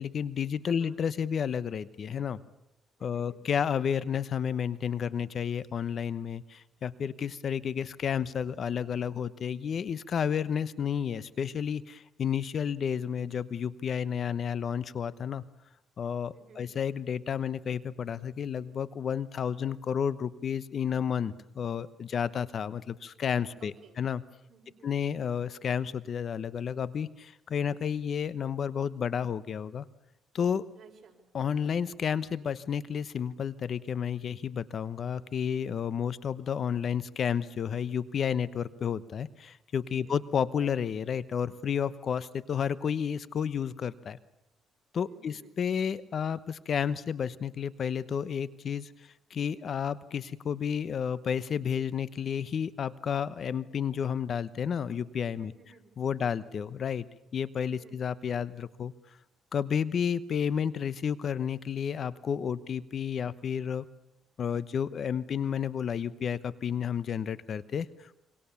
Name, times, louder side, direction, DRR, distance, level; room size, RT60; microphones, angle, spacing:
voice 1, 0.0-2.4 3.0-15.4 16.0-24.2 24.8-29.8 30.3-30.6 31.3-44.2 44.9-48.9 49.3-55.5 56.0-57.1 57.3-58.9 59.5-63.8 64.4-68.1, left 7 dB, 55° left, 16 dB, 1.0 m, -31 dB
voice 2, 0.6-1.0 3.0-3.4 16.3-16.7 23.6-24.0 24.5-25.1 30.7-31.2 39.9-40.2 45.0-45.6 55.4-55.9 56.2-56.4 57.8-58.0, right 6 dB, 50° right, 2 dB, 6.0 m, -56 dB
27.0 x 24.0 x 7.1 m, 0.86 s
cardioid pair, 90°, 0 cm